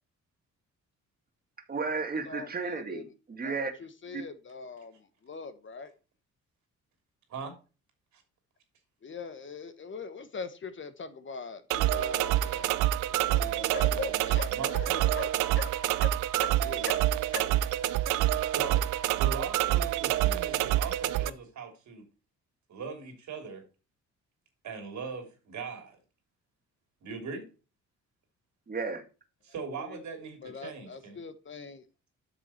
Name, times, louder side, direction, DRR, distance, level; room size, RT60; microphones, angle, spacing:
voice 1, 1.7-3.7 4.1-4.2 28.7-29.0, right 4 dB, 30° right, 1.9 m, -33 dB
voice 2, 2.3-3.0 3.4-5.9 9.0-12.8 13.1-15.3 15.5-15.7 16.0-17.0 17.3-17.7 29.8-30.0 30.4-31.8, left 4 dB, 40° left, 1.2 m, -41 dB
sound 1, 11.7-21.3, right 13 dB, 90° right, 0.6 m, -27 dB
voice 3, 14.5-15.2 18.4-22.1 22.7-23.6 24.6-26.0 27.0-27.5 29.5-31.2, right 5 dB, 70° right, 3.2 m, -40 dB
8.2 x 6.2 x 4.4 m
cardioid pair, 90°, 30 cm